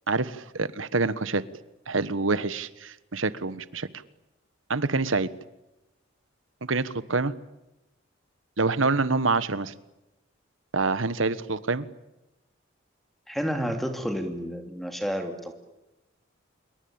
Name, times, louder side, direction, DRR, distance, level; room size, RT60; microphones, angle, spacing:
voice 1, 0.1-1.4 1.9-3.9 4.7-5.3 6.7-7.3 8.6-9.7 10.7-11.9, right 3 dB, 85° right, 15 dB, 1.3 m, -26 dB
voice 2, 13.3-15.5, equal, ahead, 6 dB, 2.7 m, -30 dB
27.5 x 23.5 x 8.9 m, 0.97 s
head